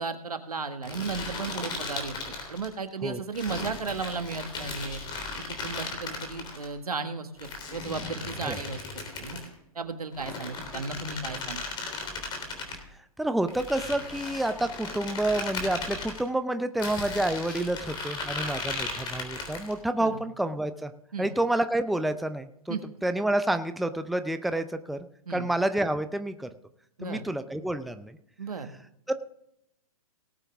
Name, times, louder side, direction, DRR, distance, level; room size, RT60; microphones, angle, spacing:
voice 1, 0.0-5.0 5.5-8.8 9.2-9.4 9.7-11.6 20.0-20.1 21.1-21.3 22.7-22.8 25.3-25.5 27.0-27.3 28.4-28.7, right 4 dB, 90° right, 8 dB, 1.6 m, -35 dB
sound 1, 0.8-2.7 3.3-6.7 7.4-9.5 10.1-12.8 13.5-16.2 16.8-19.8, left 3 dB, 25° left, 3.4 m, -36 dB
voice 2, 13.2-20.9 21.2-22.8 23.0-25.0 25.3-26.5 27.0-28.2 29.1-29.2, right 1 dB, ahead, 10 dB, 0.5 m, -29 dB
18.5 x 8.9 x 3.5 m, 0.74 s
hypercardioid pair, 120°, 19 cm